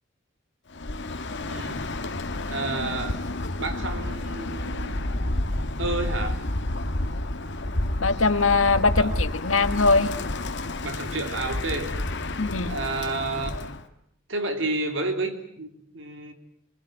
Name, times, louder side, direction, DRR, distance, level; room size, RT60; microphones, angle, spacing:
Bird, 0.7-13.8, left 1 dB, 60° left, 1.7 m, -30 dB
voice 1, 1.5-1.9 2.4-3.2 3.6-5.0 5.8-6.4 9.0-9.1 10.8-11.9 12.6-13.7 14.3-16.3, right 2 dB, 70° right, 6 dB, 3.3 m, -31 dB
voice 2, 8.0-10.2 12.4-12.8, left 3 dB, 90° left, 10 dB, 1.7 m, -21 dB
26.5 x 22.0 x 9.1 m, 0.69 s
head